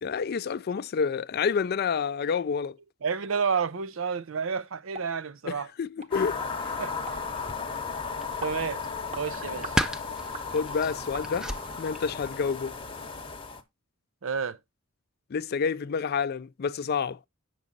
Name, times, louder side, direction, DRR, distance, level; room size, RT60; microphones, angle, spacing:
voice 1, 0.0-2.7 5.5-6.8 10.5-11.5 11.8-12.7 15.3-17.2, left 6 dB, 50° left, 0.4 m, -29 dB
voice 2, 3.0-5.7 6.8-7.3 8.4-8.8 9.2-9.7 14.2-14.6, right 6 dB, 70° right, 0.6 m, -30 dB
sound 1, 4.9-5.1 5.5-5.6 6.0-6.1 6.4-6.5 7.1-7.2 7.7-7.8 8.4-8.6 9.1-9.3 9.6-9.8 10.3-10.5 11.1-11.6 12.1-12.2 12.7-12.8 13.2-13.3, right 3 dB, 35° right, 0.9 m, -41 dB
sound 2, 6.1-13.6, left 5 dB, 25° left, 0.9 m, -35 dB
sound 3, 7.1-12.4, equal, 5° right, 0.5 m, -36 dB
8.5 x 6.1 x 3.9 m
head